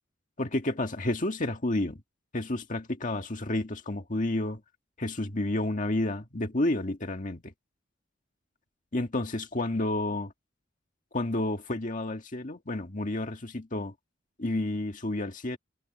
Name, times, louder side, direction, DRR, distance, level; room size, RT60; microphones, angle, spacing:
voice 1, 0.4-2.0 2.3-4.6 5.0-7.5 8.9-10.3 11.1-13.9 14.4-15.6, left 1 dB, 45° left, 1.8 m, -30 dB
head